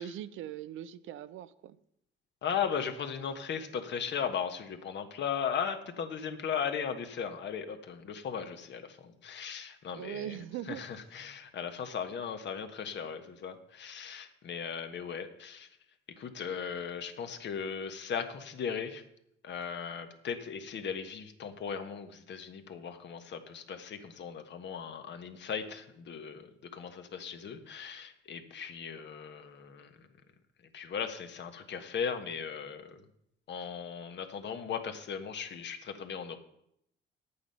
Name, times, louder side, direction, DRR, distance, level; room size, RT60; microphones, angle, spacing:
voice 1, 0.0-1.8 9.9-10.8, right 11 dB, 85° right, 15 dB, 0.6 m, -40 dB
voice 2, 2.4-10.4 10.7-15.7 16.2-19.0 19.4-30.1 30.7-33.0 33.5-36.4, left 7 dB, 65° left, 7 dB, 1.3 m, -37 dB
10.0 x 8.6 x 5.5 m, 0.75 s
cardioid pair, 90°, 20 cm